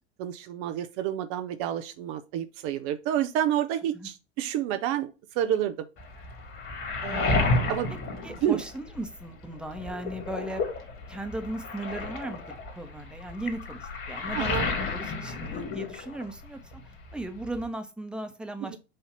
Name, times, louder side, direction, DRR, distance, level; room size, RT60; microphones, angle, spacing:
voice 1, 0.2-5.9 7.0-7.9 8.4-8.6 14.3-14.7 18.6-18.8, right 11 dB, 45° right, 0.7 m, -29 dB
Waves surf, 6.0-9.2 9.5-16.5 16.7-17.7, left 3 dB, 40° left, 2.1 m, -31 dB
voice 2, 6.9-7.6 8.2-10.6 11.1-16.8 17.1-18.8, right 1 dB, 5° right, 1.0 m, -37 dB
7.5 x 2.8 x 5.2 m
figure-of-eight pair, 85°, 34 cm